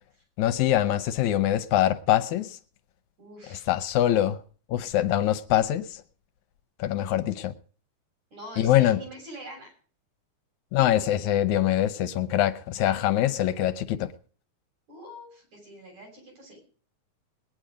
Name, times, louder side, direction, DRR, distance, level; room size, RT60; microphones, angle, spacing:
voice 1, 0.4-2.6 3.5-4.4 4.7-6.0 6.8-7.5 8.6-9.0 10.7-14.1, left 12 dB, 75° left, 2.1 m, -24 dB
voice 2, 3.2-3.7 8.3-9.7 14.9-16.6, equal, 65° right, 8.6 m, -44 dB
19.5 x 10.5 x 5.1 m
omnidirectional pair, 3.5 m